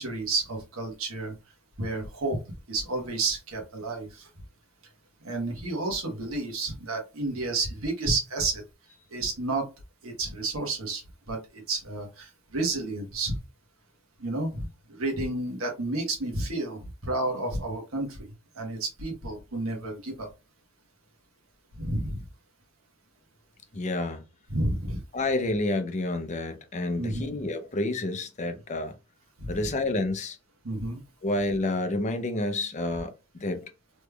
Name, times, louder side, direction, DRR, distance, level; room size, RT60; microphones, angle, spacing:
voice 1, 0.0-1.3 1.8-2.4 2.7-4.3 5.2-8.6 9.1-9.7 10.0-13.3 14.2-20.3 21.8-22.2 24.5-25.0 27.0-27.3 29.4-29.7 30.6-31.0, right 2 dB, 80° right, 1.1 m, -31 dB
voice 2, 23.7-24.2 25.1-28.9 29.5-30.4 31.2-33.6, left 2 dB, 35° left, 0.5 m, -29 dB
3.4 x 3.1 x 2.3 m
head